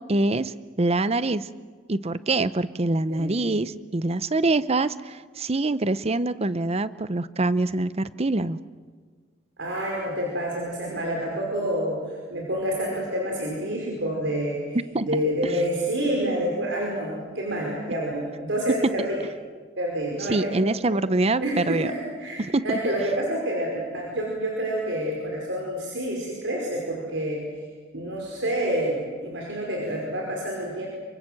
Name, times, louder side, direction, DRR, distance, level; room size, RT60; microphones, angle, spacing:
voice 1, 0.0-1.5 1.9-8.6 14.9-15.5 18.7-19.1 20.3-21.9 22.4-22.8, right 2 dB, 35° right, 15 dB, 0.7 m, -25 dB
voice 2, 9.6-12.0 12.3-19.2 19.8-20.5 21.4-27.4 27.9-30.9, equal, 75° right, -1 dB, 5.3 m, -28 dB
28.0 x 24.5 x 7.8 m, 1.5 s
head